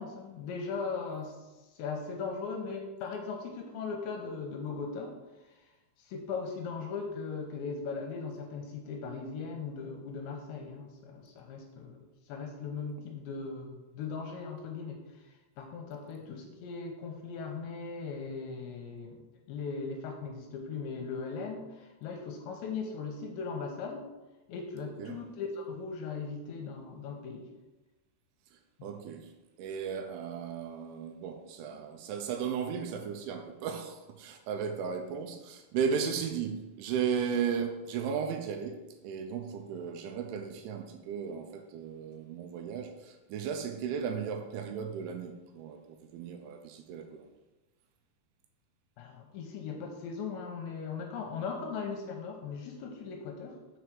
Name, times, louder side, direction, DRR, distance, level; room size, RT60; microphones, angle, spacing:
voice 1, 0.0-1.4 1.7-5.2 5.5-5.6 6.0-19.2 19.5-24.1 24.5-27.5 28.8-28.9 49.0-53.6, left 5 dB, 75° left, 2 dB, 2.9 m, -39 dB
voice 2, 28.5-29.3 29.6-47.3, right 7 dB, 85° right, 5 dB, 2.9 m, -35 dB
6.9 x 4.7 x 6.2 m, 1.1 s
omnidirectional pair, 5.7 m